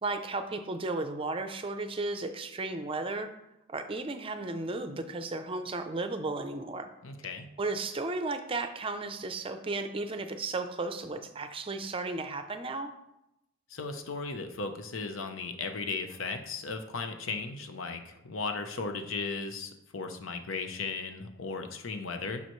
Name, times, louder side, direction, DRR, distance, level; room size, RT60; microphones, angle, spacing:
voice 1, 0.0-3.3 3.7-6.9 7.6-12.9, right 3 dB, 25° right, 8 dB, 0.5 m, -34 dB
voice 2, 7.0-7.5 13.7-22.4, left 4 dB, 80° left, 7 dB, 0.8 m, -36 dB
11.0 x 5.6 x 3.1 m, 0.89 s
head